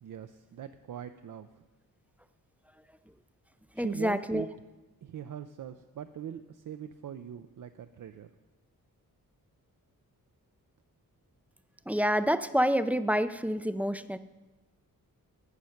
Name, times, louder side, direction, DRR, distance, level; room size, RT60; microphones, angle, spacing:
voice 1, 0.0-1.6 3.7-4.5 5.0-8.3, right 9 dB, 60° right, 9 dB, 0.6 m, -42 dB
voice 2, 3.8-4.5 11.9-14.2, equal, 5° right, 12 dB, 0.4 m, -28 dB
17.5 x 6.5 x 5.8 m, 1.1 s
wide cardioid pair, 105°, 36 cm